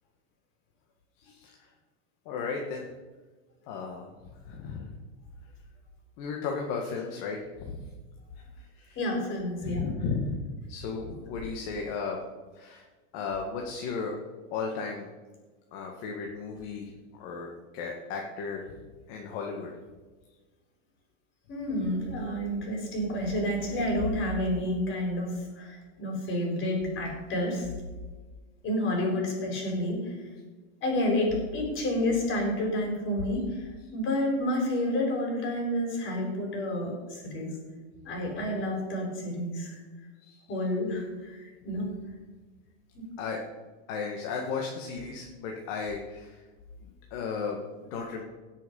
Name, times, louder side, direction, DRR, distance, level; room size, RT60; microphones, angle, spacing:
voice 1, 1.2-1.7 2.3-2.8 3.7-4.9 6.2-7.9 8.6-9.0 9.6-10.4 10.7-12.2 12.5-12.9 13.1-14.2 14.5-15.1 15.7-18.8 19.1-19.7 26.2-26.4 40.2-40.7 43.2-43.4 43.9-46.4 46.8-48.2, left 5 dB, 50° left, 0 dB, 1.8 m, -35 dB
voice 2, 9.0-9.9 21.5-27.7 28.6-30.0 30.8-33.6 33.9-37.5 38.0-39.8 40.5-41.9 42.9-43.0, left 1 dB, 30° left, 0 dB, 4.5 m, -29 dB
17.5 x 6.5 x 5.5 m, 1.3 s
supercardioid pair, 150°, 39 cm